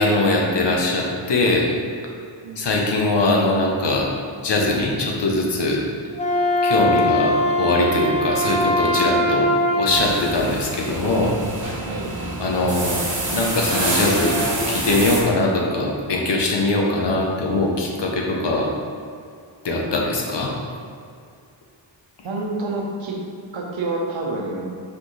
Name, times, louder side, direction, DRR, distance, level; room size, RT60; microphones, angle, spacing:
voice 1, 0.0-1.7 2.6-4.1 4.4-5.8 6.6-9.5 9.7-11.4 12.4-13.0 13.3-14.4 14.7-18.7 19.6-20.5, left 2 dB, 60° left, -1 dB, 1.1 m, -21 dB
Wind instrument woodwind instrument, 6.1-10.2, left 1 dB, 15° left, 0.8 m, -21 dB
sound 1, 9.9-15.2, right 1 dB, 40° right, 1.4 m, -26 dB
voice 2, 22.2-23.1 23.5-24.7, right 2 dB, 75° right, -1 dB, 1.1 m, -28 dB
6.0 x 5.0 x 3.3 m, 2.3 s
wide cardioid pair, 140°, 47 cm